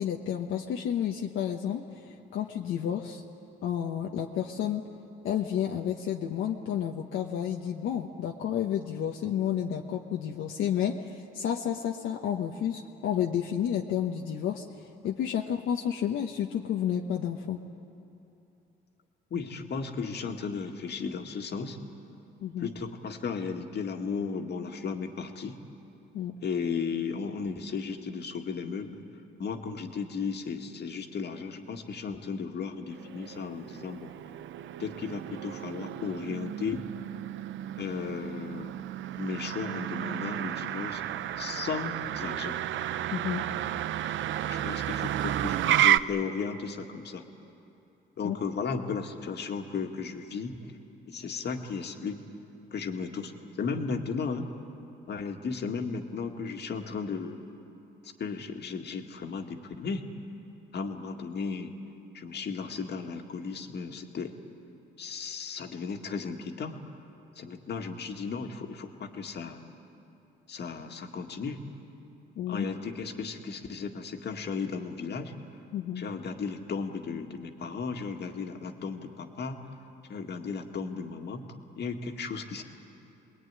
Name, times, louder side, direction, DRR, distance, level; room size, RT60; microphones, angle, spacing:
voice 1, 0.0-3.2 3.6-4.8 5.2-17.6 22.4-22.7 26.1-26.3 43.1-43.4 48.2-48.4 72.4-72.7 75.7-76.0, left 9 dB, 80° left, 1 dB, 1.2 m, -31 dB
voice 2, 19.3-21.8 22.6-25.6 26.4-29.0 29.4-34.1 34.8-36.9 37.8-38.8 39.2-41.0 41.4-42.6 44.5-47.3 48.2-50.7 51.1-52.2 52.7-53.3 53.6-54.5 55.1-57.4 58.2-60.1 60.7-61.7 62.1-64.4 65.0-66.8 67.4-69.6 70.5-71.6 72.5-75.3 76.0-79.6 80.1-81.4 81.8-82.6, left 5 dB, 60° left, 4 dB, 2.0 m, -35 dB
Motor vehicle (road), 32.9-46.0, right 12 dB, 75° right, 0.6 m, -31 dB
25.5 x 21.0 x 9.7 m, 2.8 s
cardioid pair, 90°, 20 cm